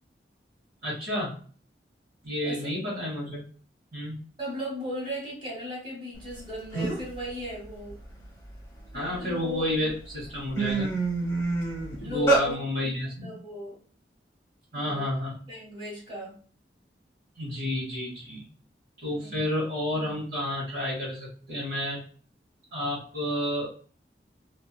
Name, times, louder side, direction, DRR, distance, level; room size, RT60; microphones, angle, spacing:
voice 1, 0.8-1.3 2.2-3.4 3.9-4.2 8.9-10.9 12.0-13.3 14.7-15.4 17.4-18.4 19.0-22.0 22.7-23.7, left 1 dB, 55° right, -6 dB, 0.9 m, -30 dB
voice 2, 4.4-8.0 8.9-9.8 12.0-12.6 13.0-13.8 14.7-15.0 15.5-16.3 19.1-19.4, equal, 25° right, -4 dB, 1.2 m, -37 dB
sound 1, 6.4-6.5 6.7-7.2 7.6-9.2 9.8-9.9 10.2-12.5, right 3 dB, 15° left, 0.9 m, -27 dB
2.8 x 2.2 x 2.2 m, 0.43 s
head